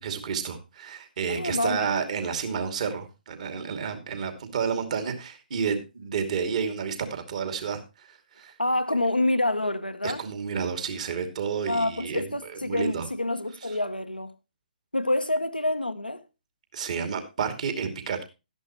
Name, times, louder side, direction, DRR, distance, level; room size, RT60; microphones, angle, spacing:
voice 1, 0.0-8.5 10.0-12.2 12.5-13.1 16.7-18.2, right 6 dB, 50° right, 2.6 m, -30 dB
voice 2, 1.3-1.9 8.6-10.2 11.7-14.3 14.9-16.2, left 1 dB, 90° left, 0.9 m, -27 dB
12.5 x 10.5 x 3.0 m
figure-of-eight pair, 130°, 5 cm